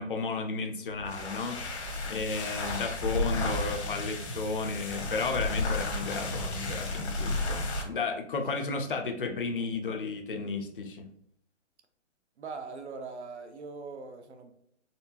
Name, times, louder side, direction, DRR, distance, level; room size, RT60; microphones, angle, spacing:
voice 1, 0.0-11.1, left 4 dB, 45° left, 4 dB, 0.6 m, -33 dB
sound 1, 0.9-7.9, left 2 dB, 60° left, 1.2 m, -33 dB
voice 2, 12.4-14.5, right 4 dB, 65° right, 6 dB, 0.8 m, -42 dB
4.3 x 3.1 x 2.8 m, 0.71 s
hypercardioid pair, 175°, 36 cm